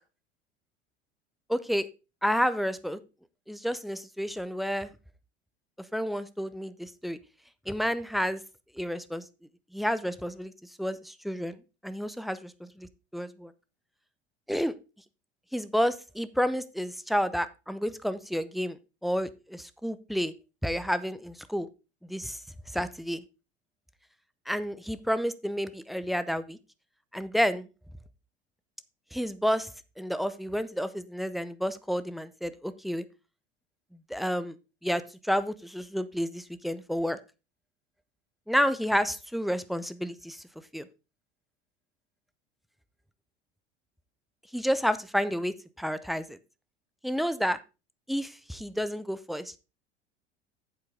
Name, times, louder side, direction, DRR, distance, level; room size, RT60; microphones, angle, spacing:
voice 1, 1.5-1.9 2.2-3.0 3.5-4.9 5.9-7.2 7.7-8.4 8.8-9.2 9.7-10.5 10.8-12.4 13.1-13.5 14.5-14.8 15.5-18.8 19.0-20.3 20.6-21.7 22.1-22.4 22.7-23.2 24.5-26.6 27.1-27.7 29.1-29.7 30.0-33.1 34.1-34.5 34.8-37.2 38.5-40.4 40.7-40.9 44.5-46.4 47.0-47.6 48.1-49.6, equal, ahead, 14 dB, 0.7 m, -30 dB
9.2 x 7.6 x 3.5 m, 0.29 s
figure-of-eight pair, 70°, 34 cm